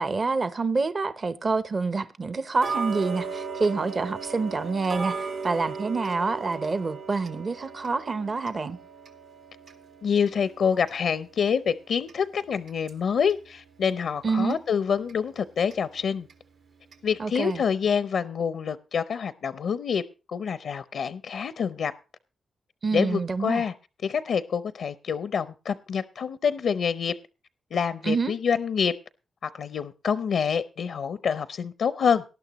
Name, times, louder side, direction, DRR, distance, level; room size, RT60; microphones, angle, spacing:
voice 1, 0.0-8.8 14.2-14.6 17.2-17.6 22.8-23.6 28.0-28.3, right 4 dB, 45° right, 0.7 m, -27 dB
Tick-tock, 2.6-13.4 13.9-14.0 14.5-14.6 15.1-15.2 15.7-15.8 16.3-16.4 16.9-17.0 17.5-17.6, right 5 dB, 80° right, 2.1 m, -37 dB
voice 2, 10.0-16.3 17.0-20.0 20.3-21.9 22.9-23.7 24.0-27.2 27.7-29.0 29.4-32.2, left 6 dB, 75° left, 0.6 m, -26 dB
19.0 x 11.5 x 3.0 m
cardioid pair, 80°, 0 cm